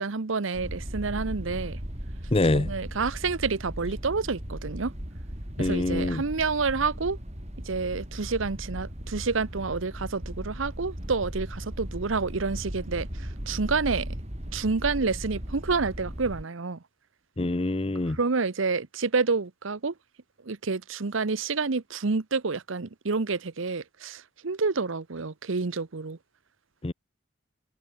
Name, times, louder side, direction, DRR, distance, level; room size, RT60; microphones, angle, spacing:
voice 1, 0.0-1.8 2.5-4.9 5.6-7.2 7.7-14.1 14.5-16.8 18.1-19.9 20.4-26.2, right 4 dB, 70° right, 0.8 m, -29 dB
sound 1, 0.5-16.4, equal, 35° right, 4.5 m, -37 dB
voice 2, 2.3-2.7 5.6-6.2 17.4-18.2 26.8-26.9, left 2 dB, 30° left, 0.7 m, -25 dB
head